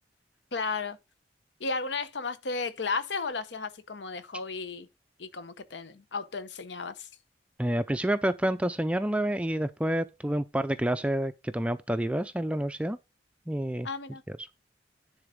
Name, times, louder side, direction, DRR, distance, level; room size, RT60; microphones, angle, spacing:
voice 1, 0.5-1.0 1.6-4.9 5.2-7.1 13.8-14.2, left 4 dB, 75° left, 0.8 m, -34 dB
voice 2, 7.6-13.0 13.5-13.9 14.4-14.5, right 1 dB, 5° right, 0.4 m, -28 dB
10.0 x 3.9 x 5.0 m
head